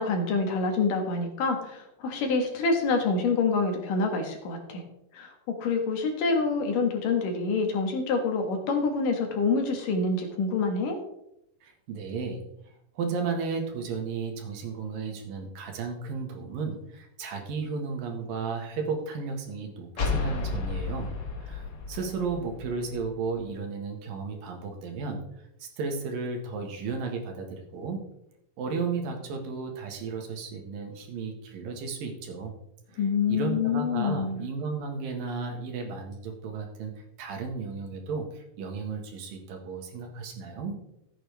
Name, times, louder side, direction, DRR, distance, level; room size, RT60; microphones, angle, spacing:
voice 1, 0.0-4.8 5.1-5.3 5.6-11.0 33.0-34.4, left 4 dB, 70° left, 3 dB, 3.3 m, -26 dB
voice 2, 11.6-21.1 21.4-25.2 25.6-28.0 28.6-32.5 32.9-33.0 33.3-40.8, right 4 dB, 80° right, 3 dB, 3.4 m, -34 dB
sound 1, 20.0-23.5, left 4 dB, 55° left, 1.2 m, -33 dB
14.5 x 8.7 x 3.5 m, 0.81 s
omnidirectional pair, 4.0 m